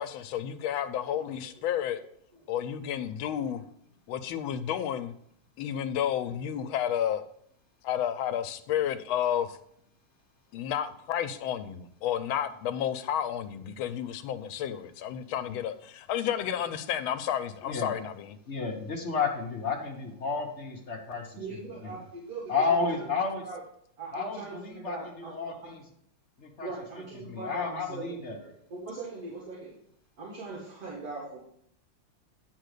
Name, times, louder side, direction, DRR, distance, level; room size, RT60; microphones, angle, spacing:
voice 1, 0.0-2.0 2.5-3.6 4.1-5.1 5.6-7.2 7.8-9.6 10.5-18.4, left 10 dB, 85° left, 1.4 m, -31 dB
voice 2, 1.0-1.5 1.9-2.0 2.5-2.6 21.4-23.6 24.0-25.7 26.6-28.0 28.3-28.4 28.7-29.7 30.2-31.4, right 3 dB, 45° right, 2.2 m, -41 dB
voice 3, 17.6-17.9 18.5-22.0 22.5-23.4 24.1-25.8 26.4-26.7 27.1-28.4, left 4 dB, 45° left, 1.0 m, -32 dB
9.0 x 4.0 x 6.5 m
omnidirectional pair, 2.2 m